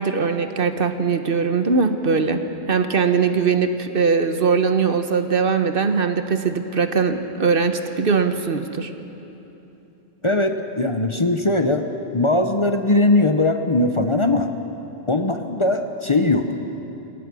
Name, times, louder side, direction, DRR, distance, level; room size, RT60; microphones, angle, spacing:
voice 1, 0.0-2.4 2.7-8.9, right 5 dB, 60° right, 8 dB, 1.2 m, -21 dB
voice 2, 10.2-11.8 12.1-14.5 15.1-16.5, left 2 dB, 30° left, 6 dB, 0.9 m, -20 dB
27.5 x 17.5 x 6.2 m, 2.9 s
omnidirectional pair, 1.1 m